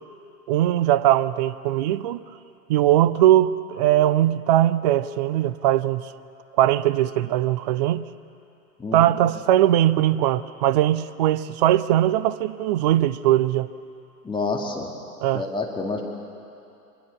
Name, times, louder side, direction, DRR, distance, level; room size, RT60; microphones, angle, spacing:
voice 1, 0.5-2.2 2.7-6.0 6.6-8.1 8.9-13.7 15.2-15.4, right 13 dB, 30° right, 17 dB, 0.4 m, -20 dB
voice 2, 8.8-9.1 14.2-14.9 15.3-16.0, left 3 dB, 10° left, -1 dB, 2.3 m, -28 dB
24.0 x 21.5 x 7.0 m, 2.6 s
figure-of-eight pair, 95°, 47 cm